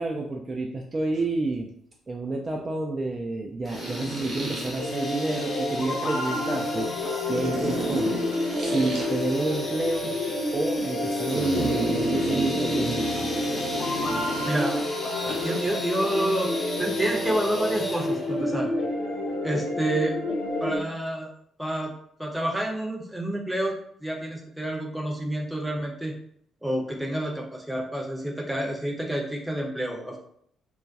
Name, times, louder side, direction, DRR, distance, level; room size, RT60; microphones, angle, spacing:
voice 1, 0.0-1.7 2.1-6.9 7.3-8.2 8.6-10.1 10.5-13.1, right 2 dB, 35° right, 1 dB, 0.3 m, -29 dB
sound 1, 1.2-1.3 3.7-4.8 7.3-9.1 11.3-14.7 15.3-15.6, right 1 dB, 50° right, 0.7 m, -31 dB
sound 2, 3.6-18.4, left 1 dB, 25° left, 0.8 m, -38 dB
sound 3, 4.8-20.8, left 1 dB, 65° left, 0.6 m, -29 dB
voice 2, 14.5-14.9 15.2-16.5 16.8-18.7 19.4-20.1 20.6-21.3 21.6-21.9 22.2-23.7 24.0-26.1 26.6-30.2, right 1 dB, 5° right, 0 dB, 0.7 m, -28 dB
2.3 x 2.2 x 2.6 m, 0.66 s
figure-of-eight pair, 40°, 0 cm